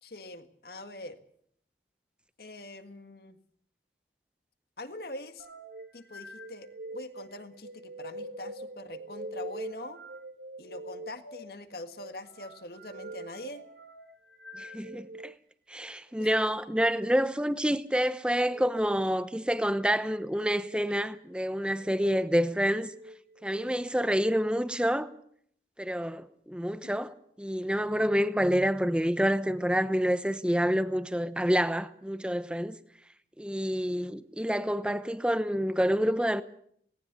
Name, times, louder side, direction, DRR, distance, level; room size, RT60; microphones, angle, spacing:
voice 1, 0.0-1.2 2.4-3.4 4.8-5.5 5.9-10.0 10.6-13.6 16.2-16.3 27.0-27.1, left 2 dB, 60° left, 1.9 m, -43 dB
sound 1, 5.4-15.3 16.1-16.4 18.4-18.7 19.5-20.0 20.6-20.9 21.6-22.1 22.6-23.7, right 1 dB, 75° right, 1.9 m, -44 dB
voice 2, 14.6-15.3 15.7-22.9 23.4-25.1 25.8-32.8 33.4-36.4, equal, 5° right, 0.8 m, -28 dB
18.5 x 18.0 x 8.3 m
head